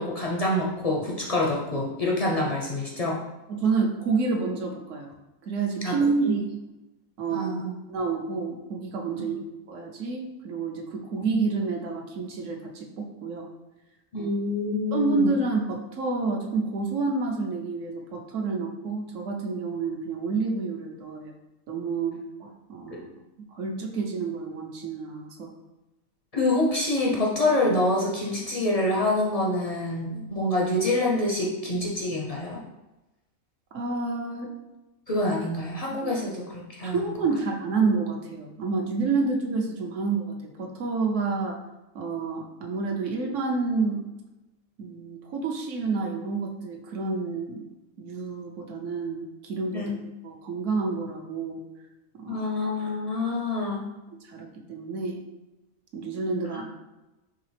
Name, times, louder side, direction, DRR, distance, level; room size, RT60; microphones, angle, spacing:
voice 1, 0.0-3.2 5.8-6.0 7.3-7.7 9.3-9.4 14.1-15.3 26.3-32.6 35.1-37.0 49.7-49.9 52.3-53.8 56.5-56.6, left 1 dB, 50° left, -3 dB, 0.4 m, -26 dB
voice 2, 3.5-5.1 5.4-6.5 7.2-7.5 7.9-9.4 9.7-13.5 14.1-14.3 14.9-21.3 21.7-23.1 23.4-25.5 33.7-34.5 36.0-36.1 36.8-41.6 41.9-44.0 44.8-47.7 48.0-50.0 50.2-51.6 52.2-52.5 54.2-55.2 55.9-56.6, right 4 dB, 65° right, 2 dB, 1.0 m, -29 dB
4.7 x 3.3 x 3.2 m, 1.0 s
omnidirectional pair, 1.5 m